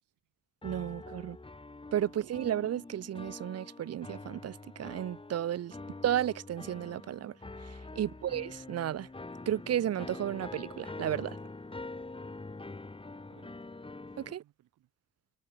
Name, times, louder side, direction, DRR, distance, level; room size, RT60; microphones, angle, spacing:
sound 1, 0.6-14.3, left 3 dB, 15° left, 4.2 m, -45 dB
voice 1, 0.6-1.4 1.9-5.8 6.0-7.3 8.0-9.1 9.5-11.4 14.2-14.4, right 11 dB, 55° right, 0.9 m, -33 dB
voice 2, 7.9-8.3 12.3-12.7 13.3-13.7 14.2-14.9, right 14 dB, 85° right, 6.3 m, -65 dB
cardioid pair, 90°, 30 cm